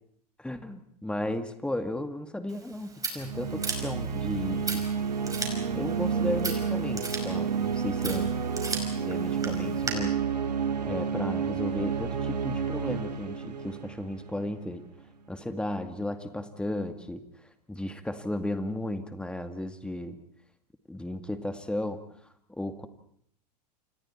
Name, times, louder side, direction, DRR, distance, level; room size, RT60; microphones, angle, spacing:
voice 1, 0.4-4.9 5.7-8.3 9.0-10.2 10.8-14.8 15.3-20.2 20.9-22.0 22.5-22.9, left 1 dB, 5° left, 9 dB, 2.1 m, -34 dB
Scissors, 2.5-9.9, right 4 dB, 15° right, 5.5 m, -38 dB
sound 1, 3.2-14.7, right 6 dB, 75° right, 2.3 m, -30 dB
29.0 x 27.5 x 4.5 m, 0.66 s
figure-of-eight pair, 90°, 21 cm